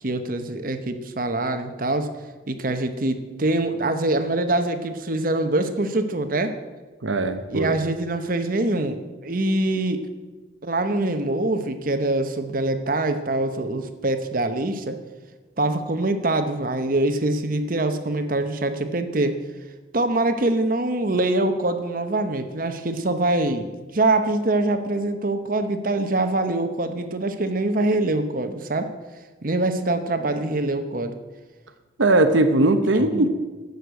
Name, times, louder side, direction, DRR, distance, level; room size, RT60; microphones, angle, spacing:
voice 1, 0.0-2.1 2.5-6.5 7.5-10.0 10.6-15.0 15.6-19.4 19.9-28.9 29.4-31.1 32.9-33.3, right 2 dB, 45° right, 8 dB, 0.9 m, -24 dB
voice 2, 7.0-7.8 32.0-33.3, right 2 dB, 80° right, 9 dB, 1.0 m, -19 dB
13.0 x 8.1 x 8.1 m, 1.3 s
head